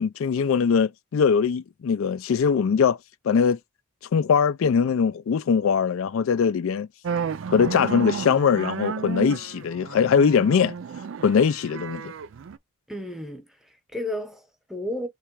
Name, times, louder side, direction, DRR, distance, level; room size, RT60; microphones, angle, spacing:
voice 1, 0.0-3.0 3.2-3.6 4.1-6.9 7.5-10.7 11.2-12.1, left 6 dB, 75° left, 0.4 m, -21 dB
sound 1, 7.0-12.6, right 6 dB, 60° right, 0.4 m, -32 dB
voice 2, 12.9-15.1, left 1 dB, ahead, 0.9 m, -33 dB
3.4 x 3.0 x 4.6 m
head